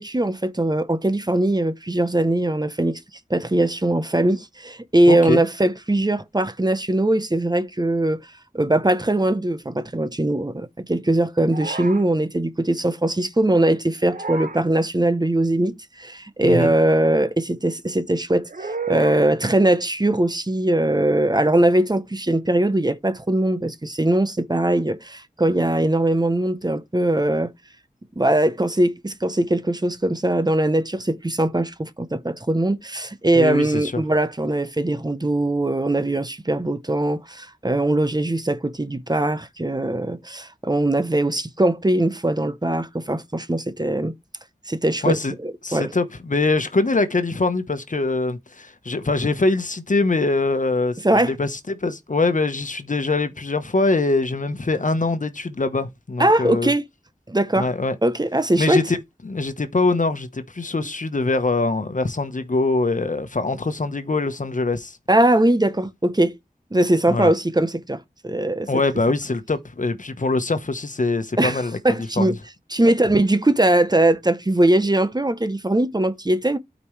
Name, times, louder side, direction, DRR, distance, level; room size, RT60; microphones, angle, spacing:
voice 1, 0.0-3.0 3.3-8.2 8.5-27.5 28.2-44.1 44.7-45.1 45.4-45.9 51.0-51.3 56.2-56.8 57.3-57.7 58.0-58.8 65.1-66.3 66.7-68.7 71.4-72.3 72.7-76.6, right 1 dB, 25° right, 0.9 m, -21 dB
voice 2, 5.1-5.4 16.4-16.7 33.3-34.0 45.0-45.3 45.6-56.7 57.6-58.0 58.6-59.0 59.2-65.0 67.1-67.3 68.7-71.8 72.2-72.3, left 3 dB, 60° left, 1.2 m, -23 dB
sound 1, 11.5-12.0 14.0-14.6 18.5-19.2, right 4 dB, 65° right, 1.0 m, -31 dB
12.0 x 5.2 x 3.3 m
wide cardioid pair, 65°, 15 cm